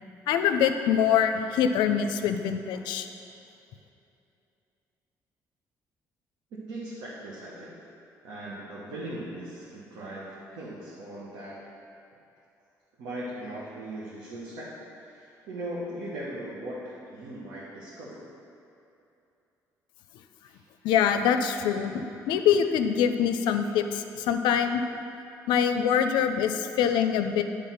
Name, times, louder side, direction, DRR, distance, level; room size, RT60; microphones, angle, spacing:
voice 1, 0.3-3.1 20.8-24.8 25.5-27.4, left 8 dB, 85° left, 8 dB, 0.4 m, -24 dB
voice 2, 6.5-7.7 8.2-11.6 13.0-14.7 15.0-18.2 20.4-20.6, right 1 dB, 85° right, -6 dB, 1.2 m, -39 dB
9.2 x 3.5 x 5.7 m, 2.8 s
supercardioid pair, 75°, 8 cm